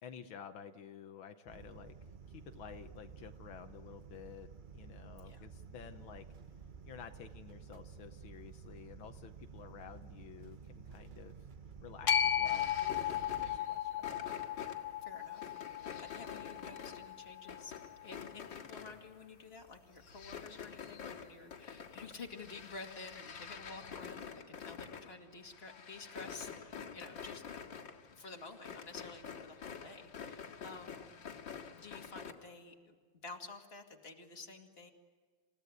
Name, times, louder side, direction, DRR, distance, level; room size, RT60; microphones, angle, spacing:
voice 1, 0.0-2.0 2.3-6.3 6.8-11.4 11.8-14.1, left 8 dB, 80° left, 7 dB, 1.8 m, -52 dB
sound 1, 1.5-13.6, right 6 dB, 60° right, 0.5 m, -52 dB
sound 2, 12.1-18.3, left 9 dB, 45° left, 1.1 m, -36 dB
sound 3, 12.4-19.4 19.8-32.3, left 7 dB, 65° left, 2.6 m, -48 dB
voice 2, 15.0-17.7 18.0-27.4 28.1-31.1 31.7-32.9 33.2-34.9, left 3 dB, 30° left, 2 dB, 2.5 m, -51 dB
28.5 x 16.0 x 9.4 m, 1.5 s
omnidirectional pair, 2.2 m